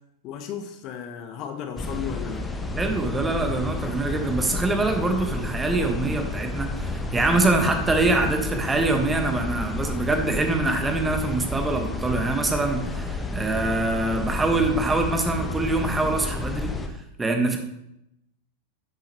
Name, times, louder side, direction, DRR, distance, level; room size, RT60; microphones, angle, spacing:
voice 1, 0.2-2.4, left 8 dB, 40° left, 5 dB, 1.4 m, -34 dB
sound 1, 1.8-16.9, left 2 dB, 10° left, 1.2 m, -31 dB
voice 2, 2.8-16.7 17.2-17.6, right 2 dB, 10° right, 4 dB, 1.7 m, -24 dB
12.0 x 10.5 x 3.2 m, 0.82 s
figure-of-eight pair, 90°, 0 cm